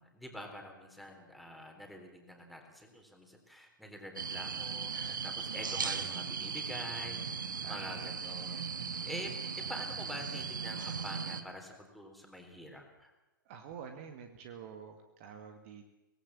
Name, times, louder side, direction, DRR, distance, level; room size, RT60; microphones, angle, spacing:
voice 1, 0.0-13.1, equal, ahead, 2 dB, 3.7 m, -47 dB
sound 1, 4.2-11.4, right 6 dB, 65° right, 1.7 m, -38 dB
voice 2, 4.9-5.2 5.5-5.8 7.6-8.1 13.5-15.9, right 7 dB, 40° right, 6 dB, 2.1 m, -48 dB
25.0 x 18.5 x 7.5 m, 1.0 s
figure-of-eight pair, 115°, 11 cm